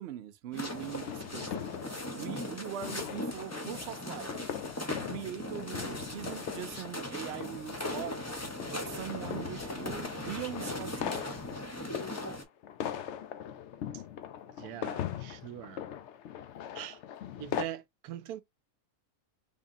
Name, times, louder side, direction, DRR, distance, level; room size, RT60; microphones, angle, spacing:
voice 1, 0.0-1.5 2.1-4.5 4.9-8.2 8.7-11.4, right 11 dB, 60° right, 0.7 m, -41 dB
sound 1, 0.5-12.4, left 1 dB, 25° left, 0.3 m, -39 dB
sound 2, 0.7-17.6, left 9 dB, 65° left, 0.7 m, -41 dB
voice 2, 14.6-15.8 16.7-17.0 17.4-18.4, right 11 dB, 85° right, 1.1 m, -42 dB
3.6 x 3.5 x 2.6 m
omnidirectional pair, 1.6 m